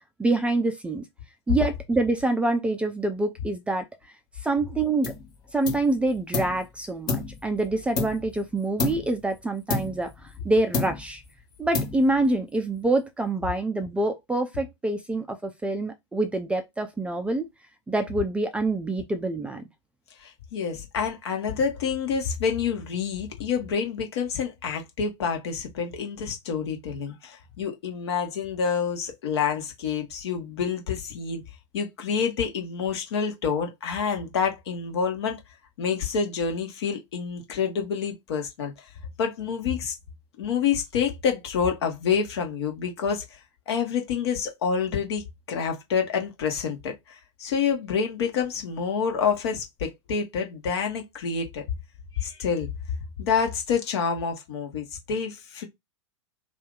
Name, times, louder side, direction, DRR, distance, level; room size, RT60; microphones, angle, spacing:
voice 1, 0.2-1.0 1.5-3.9 4.4-5.1 5.5-10.1 10.4-11.2 11.6-17.4 17.9-19.6, right 2 dB, 5° right, 0.4 m, -26 dB
sound 1, 5.0-5.3 5.6-6.6 7.1-8.4 8.8-9.2 9.7-10.4 10.7-11.3 11.7-12.3, left 4 dB, 25° left, 1.1 m, -30 dB
voice 2, 20.2-31.4 31.7-35.4 35.8-38.9 39.2-39.9 40.4-43.4 43.7-51.7 52.1-52.7 53.2-55.7, left 6 dB, 55° left, 1.1 m, -28 dB
2.7 x 2.4 x 3.7 m
figure-of-eight pair, 95°, 16 cm